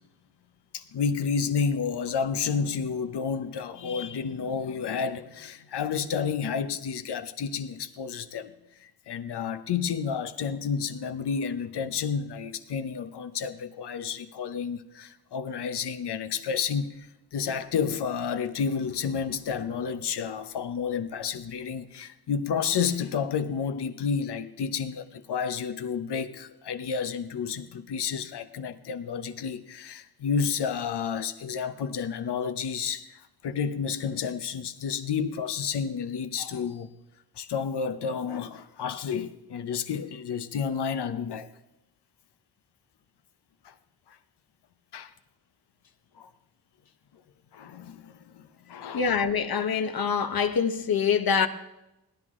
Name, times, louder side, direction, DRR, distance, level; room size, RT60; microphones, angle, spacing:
voice 1, 0.7-8.5 8.8-36.9 37.4-41.5 43.6-43.7 44.9-45.1 46.2-46.3 47.5-49.1, left 6 dB, 85° left, 0.9 m, -31 dB
voice 2, 48.9-51.5, left 6 dB, 65° left, 1.1 m, -25 dB
18.0 x 11.0 x 3.7 m
cardioid pair, 65°, 39 cm